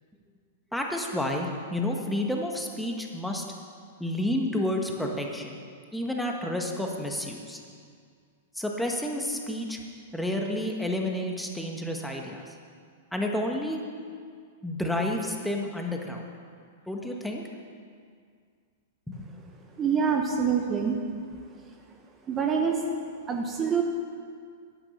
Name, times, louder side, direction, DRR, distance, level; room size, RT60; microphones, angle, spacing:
voice 1, 0.7-3.4 4.0-5.6 5.9-7.6 8.5-9.8 10.1-12.4 13.1-13.8 14.6-16.2 16.9-17.4 19.1-19.2, left 1 dB, ahead, 1 dB, 1.5 m, -30 dB
voice 2, 19.8-21.0 22.3-22.8 23.3-23.8, right 6 dB, 25° right, 2 dB, 1.2 m, -25 dB
10.5 x 10.5 x 6.6 m, 2.1 s
figure-of-eight pair, 105°, 0 cm